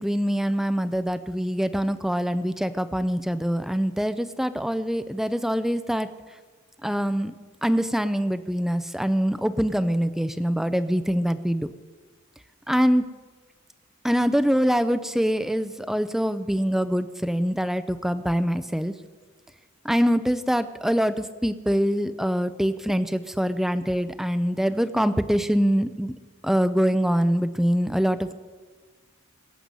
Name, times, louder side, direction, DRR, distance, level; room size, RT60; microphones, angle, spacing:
voice 1, 0.0-6.1 6.8-7.3 7.6-11.7 12.7-13.1 14.0-18.9 19.8-26.1 26.4-28.3, equal, ahead, 12 dB, 0.5 m, -24 dB
24.0 x 8.0 x 5.4 m, 1.4 s
head